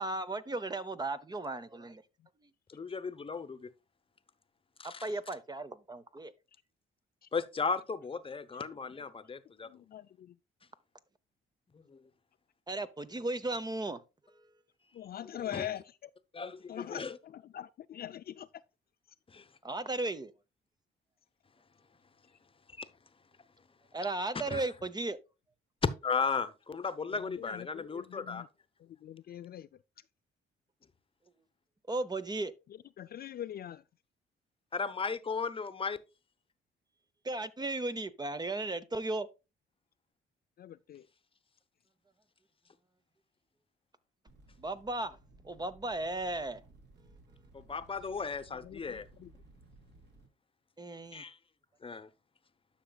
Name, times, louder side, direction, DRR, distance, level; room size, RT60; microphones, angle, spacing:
voice 1, 0.0-2.0 4.8-6.3 12.7-14.0 19.6-20.3 23.9-25.2 31.9-32.5 37.2-39.3 44.6-45.2 45.4-46.6 50.8-51.2, right 2 dB, 20° right, 0.7 m, -35 dB
voice 2, 2.7-3.7 4.8-5.0 7.3-9.7 15.3-15.7 16.3-17.2 19.3-19.4 22.8-22.9 24.5-24.6 26.0-28.4 34.7-36.0 47.5-49.1 51.1-51.4 51.8-52.1, left 5 dB, 25° left, 0.9 m, -36 dB
voice 3, 9.6-10.3 14.9-16.1 16.7-18.5 27.2-28.5 28.8-29.7 33.0-33.8 40.6-41.1 48.6-49.3, left 11 dB, 50° left, 0.4 m, -43 dB
sound 1, 44.3-50.3, right 2 dB, 60° right, 3.2 m, -59 dB
11.5 x 6.0 x 2.3 m
cardioid pair, 90°, 20 cm